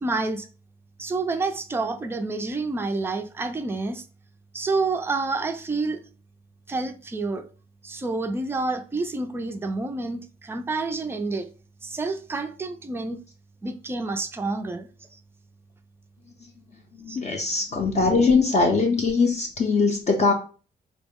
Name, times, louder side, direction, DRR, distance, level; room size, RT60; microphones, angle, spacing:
voice 1, 0.0-0.5 1.0-4.0 4.5-6.0 6.7-7.5 7.8-11.5 11.8-13.2 13.6-14.9 17.1-17.2, right 3 dB, 15° right, 0.3 m, -28 dB
voice 2, 16.9-20.3, left 4 dB, 40° left, 0.5 m, -21 dB
3.8 x 2.0 x 3.4 m
cardioid pair, 135°, 18 cm